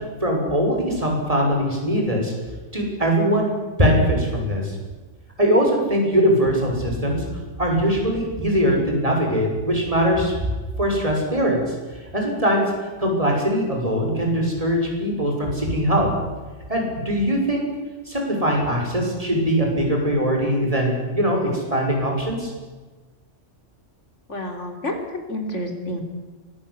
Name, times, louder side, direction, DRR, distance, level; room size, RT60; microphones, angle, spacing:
voice 1, 0.2-2.3 2.7-3.5 3.8-4.7 5.4-7.2 7.6-10.3 10.8-11.7 12.1-12.6 13.0-16.1 16.7-17.6 18.1-22.5, equal, 25° right, 0 dB, 6.5 m, -21 dB
voice 2, 24.3-26.0, left 1 dB, 65° left, 4 dB, 4.0 m, -29 dB
24.0 x 15.0 x 9.9 m, 1.3 s
omnidirectional pair, 1.3 m